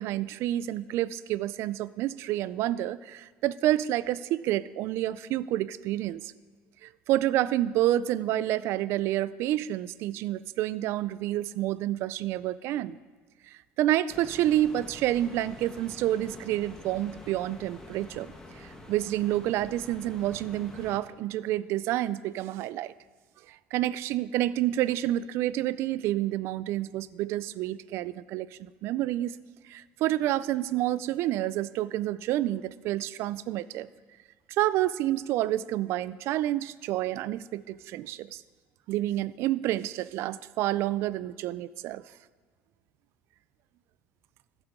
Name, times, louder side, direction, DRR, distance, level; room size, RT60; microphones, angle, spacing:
voice 1, 0.0-6.3 6.8-13.0 13.5-22.9 23.5-29.4 29.7-33.9 34.6-38.4 38.9-42.0, right 14 dB, 65° right, 17 dB, 0.4 m, -29 dB
sound 1, 14.1-21.0, left 1 dB, 15° left, 1.2 m, -47 dB
14.5 x 8.2 x 3.7 m, 1.5 s
cardioid pair, 145°, 5 cm